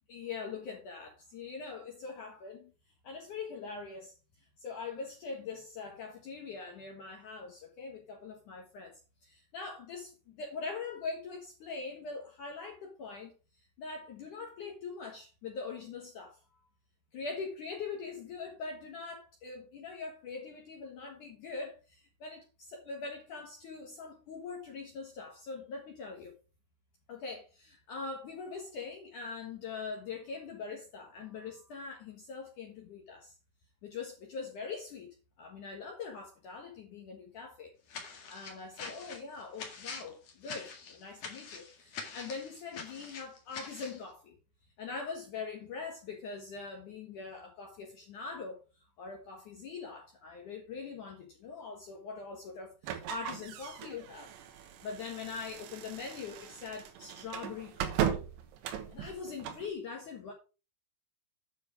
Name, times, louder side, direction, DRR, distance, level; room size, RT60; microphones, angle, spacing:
voice 1, 0.1-2.7 3.0-13.3 13.8-16.4 17.1-26.3 27.1-33.4 33.8-37.7 38.0-44.4 44.8-54.3 54.6-58.2 58.9-60.3, left 4 dB, 70° left, 1.9 m, -43 dB
sound 1, 37.9-44.0, left 5 dB, 55° left, 1.9 m, -45 dB
sound 2, 52.8-59.7, right 9 dB, 75° right, 3.5 m, -38 dB
9.6 x 6.3 x 4.8 m
omnidirectional pair, 5.8 m